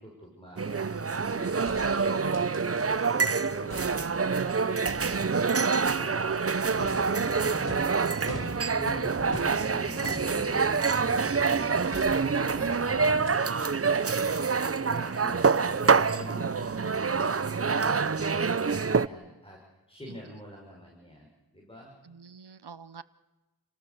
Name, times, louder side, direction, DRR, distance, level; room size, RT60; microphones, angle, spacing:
voice 1, 0.0-7.9 8.7-11.2 11.6-12.1 12.5-19.6 19.9-21.9, equal, 15° left, -1 dB, 6.3 m, -45 dB
sound 1, 0.6-19.1, right 5 dB, 35° right, 0.7 m, -26 dB
sound 2, 1.7-3.2 3.5-4.4 4.9-11.4 11.9-12.8 13.2-13.4 13.6-13.7, left 1 dB, 65° left, 4.6 m, -44 dB
sound 3, 6.8-13.4, equal, ahead, 1.0 m, -43 dB
voice 2, 12.0-12.7 20.1-20.2 22.0-23.0, right 6 dB, 80° right, 16 dB, 1.0 m, -46 dB
29.5 x 18.5 x 7.1 m, 1.1 s
wide cardioid pair, 40°, 39 cm